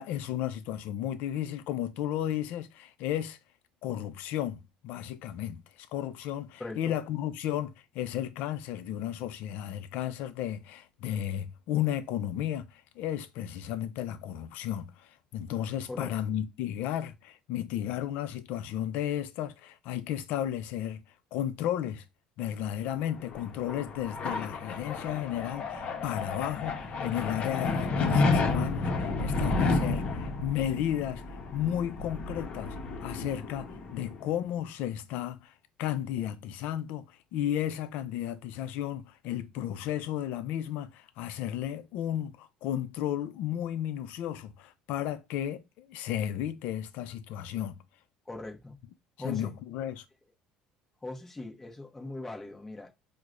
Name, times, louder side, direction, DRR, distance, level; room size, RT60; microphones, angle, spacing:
voice 1, 0.0-3.4 3.8-21.0 21.3-22.0 22.4-31.2 31.5-33.7 33.9-35.5 35.8-47.8 49.2-50.0, left 11 dB, 70° left, 0.5 m, -33 dB
voice 2, 6.6-7.0 15.9-16.1 48.3-48.8 49.2-49.5 51.0-52.9, left 2 dB, 10° left, 0.9 m, -40 dB
sound 1, 23.0-34.3, left 3 dB, 45° left, 0.9 m, -31 dB
4.5 x 2.1 x 2.5 m
supercardioid pair, 100°, 3 cm